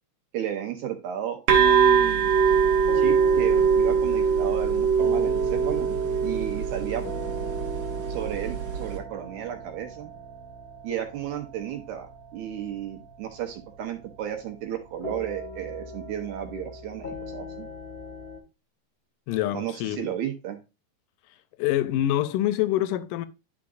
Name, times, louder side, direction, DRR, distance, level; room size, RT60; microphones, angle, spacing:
voice 1, 0.3-2.3 2.9-5.9 6.2-7.1 8.1-10.1 10.8-17.7 19.5-20.6, right 10 dB, 75° right, 2.2 m, -33 dB
sound 1, 1.5-9.0, right 6 dB, 55° right, 1.6 m, -22 dB
sound 2, 2.3-18.4, equal, 40° left, 0.9 m, -39 dB
voice 2, 19.3-20.1 21.6-23.3, left 13 dB, 80° left, 2.1 m, -25 dB
10.5 x 4.8 x 2.5 m
omnidirectional pair, 3.9 m